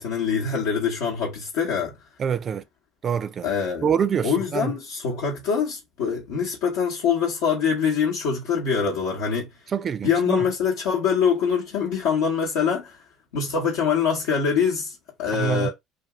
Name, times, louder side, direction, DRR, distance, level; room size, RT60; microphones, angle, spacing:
voice 1, 0.0-1.9 3.4-4.0 4.2-9.5 10.0-13.0 13.3-15.7, left 6 dB, 80° left, 0.8 m, -24 dB
voice 2, 2.2-2.6 3.0-3.5 3.8-4.7 9.7-10.4 15.4-15.7, right 7 dB, 40° right, 0.4 m, -25 dB
2.6 x 2.4 x 2.9 m
hypercardioid pair, 75°, 0 cm